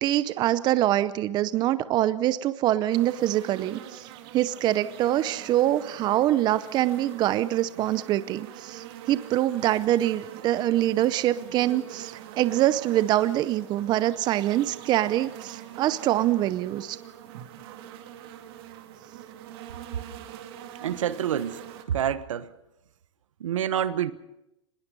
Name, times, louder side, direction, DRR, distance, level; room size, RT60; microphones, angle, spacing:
voice 1, 0.0-4.1 4.3-17.0, right 13 dB, 25° right, 14 dB, 0.7 m, -24 dB
sound 1, 2.9-21.8, right 10 dB, 50° right, 2.4 m, -44 dB
voice 2, 20.8-21.6 21.9-22.5 23.4-24.1, right 10 dB, 80° right, 14 dB, 1.2 m, -27 dB
24.5 x 20.5 x 5.4 m, 0.90 s
hypercardioid pair, 140°, 16 cm